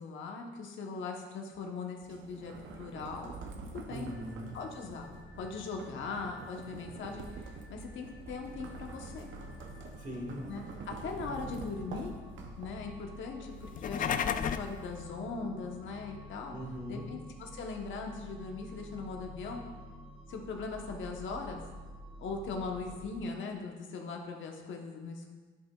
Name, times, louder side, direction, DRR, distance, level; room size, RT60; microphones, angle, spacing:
voice 1, 0.0-3.3 3.7-4.2 4.5-5.1 5.4-9.3 10.5-12.1 12.6-16.6 16.9-19.6 20.3-21.6 22.2-25.3, left 4 dB, 75° left, 2 dB, 1.1 m, -40 dB
sound 1, 2.0-13.0, right 4 dB, 75° right, 0.8 m, -47 dB
voice 2, 3.9-4.5 10.0-10.5 11.2-11.5 16.5-17.1, equal, 40° right, -1 dB, 1.8 m, -41 dB
sound 2, 4.0-23.2, equal, 5° left, 1.9 m, -50 dB
sound 3, 13.6-14.8, left 8 dB, 45° left, 0.4 m, -32 dB
11.0 x 5.2 x 2.4 m, 1.3 s
cardioid pair, 90°, 20 cm